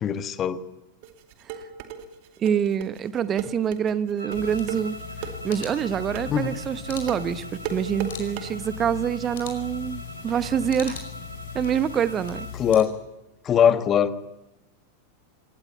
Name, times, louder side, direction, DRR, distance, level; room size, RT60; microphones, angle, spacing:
voice 1, 0.0-0.6 6.3-6.6 12.5-12.9 13.4-14.1, left 8 dB, 25° left, 13 dB, 1.4 m, -21 dB
sound 1, 1.0-8.5, right 8 dB, 45° right, 2.5 m, -36 dB
voice 2, 2.4-5.0 5.4-11.0 11.5-12.5, right 8 dB, 25° right, 15 dB, 1.0 m, -26 dB
sound 2, 4.2-12.6, right 1 dB, 85° right, 2.5 m, -42 dB
sound 3, 4.3-12.8, left 8 dB, 55° left, 5.2 m, -39 dB
22.0 x 18.5 x 9.3 m, 0.99 s
figure-of-eight pair, 90°, 0 cm